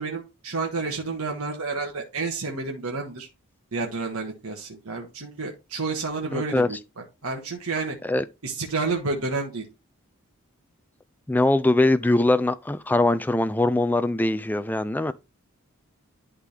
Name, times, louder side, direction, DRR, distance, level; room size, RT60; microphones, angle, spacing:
voice 1, 0.0-3.3 3.7-8.0 8.4-9.7, right 3 dB, 85° right, 1.5 m, -30 dB
voice 2, 6.3-6.7 8.0-8.2 11.3-15.1, left 2 dB, 10° left, 0.3 m, -22 dB
11.0 x 3.8 x 3.3 m
head